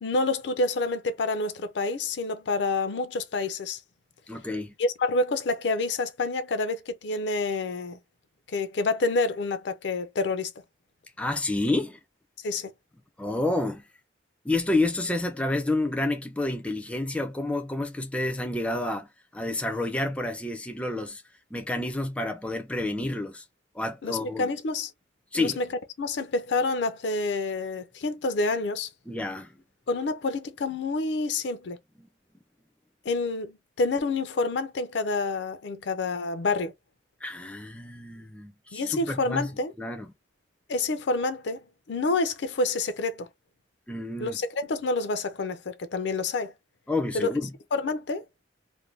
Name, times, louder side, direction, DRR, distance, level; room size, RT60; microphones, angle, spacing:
voice 1, 0.0-3.8 4.8-8.0 8.5-10.5 12.4-12.7 24.0-24.9 25.3-25.6 26.0-28.9 29.9-31.8 33.1-36.7 38.7-39.7 40.7-41.6 41.9-43.3 44.2-46.5 47.1-47.3 47.7-48.2, left 3 dB, 70° left, 0.5 m, -28 dB
voice 2, 4.3-4.7 11.2-12.0 13.2-13.8 14.4-21.2 21.5-23.4 23.8-24.5 25.3-25.6 29.1-29.6 32.0-32.1 37.2-39.5 39.8-40.1 43.9-44.4 46.9-47.5, left 2 dB, 5° left, 0.3 m, -29 dB
2.5 x 2.1 x 3.2 m
head